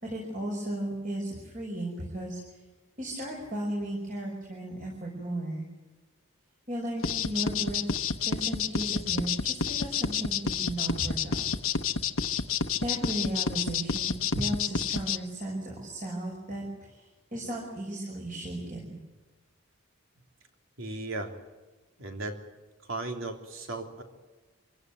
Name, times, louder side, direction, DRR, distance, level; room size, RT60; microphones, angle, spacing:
voice 1, 0.0-2.4 3.0-5.6 6.7-7.9 8.2-11.5 12.8-17.0 17.3-19.0, right 1 dB, 40° right, -2 dB, 5.6 m, -35 dB
sound 1, 7.0-15.2, left 6 dB, 80° left, 1.1 m, -29 dB
voice 2, 20.8-21.3 22.0-22.4 22.9-24.0, right 2 dB, 70° right, 4 dB, 3.2 m, -36 dB
26.0 x 16.5 x 9.5 m, 1.3 s
head